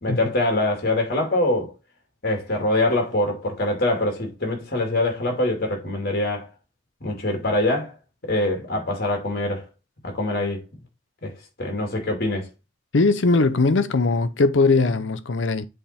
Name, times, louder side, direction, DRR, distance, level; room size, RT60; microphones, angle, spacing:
voice 1, 0.0-1.7 2.2-6.5 7.0-7.9 8.2-9.7 10.0-10.6 11.2-11.3 11.6-12.5, left 1 dB, 55° left, 2.4 m, -24 dB
voice 2, 12.9-15.7, left 3 dB, 70° left, 0.7 m, -20 dB
7.8 x 3.6 x 4.2 m
head